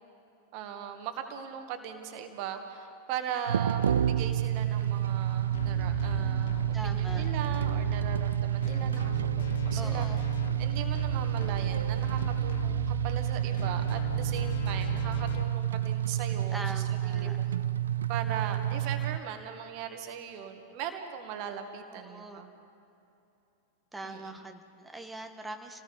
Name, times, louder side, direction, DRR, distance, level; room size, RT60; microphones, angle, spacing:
voice 1, 0.5-10.1 10.6-16.6 17.1-17.4 18.1-22.5 24.0-24.4, right 8 dB, 45° right, 6 dB, 1.9 m, -39 dB
sound 1, 3.5-19.2, right 11 dB, 70° right, 0.5 m, -29 dB
sound 2, 5.5-15.4, left 8 dB, 60° left, 1.1 m, -39 dB
voice 2, 6.7-7.3 9.7-10.2 16.5-17.6 21.9-22.5 23.9-25.8, right 1 dB, 5° right, 5 dB, 1.7 m, -42 dB
29.0 x 18.5 x 5.3 m, 2.8 s
figure-of-eight pair, 90°, 0 cm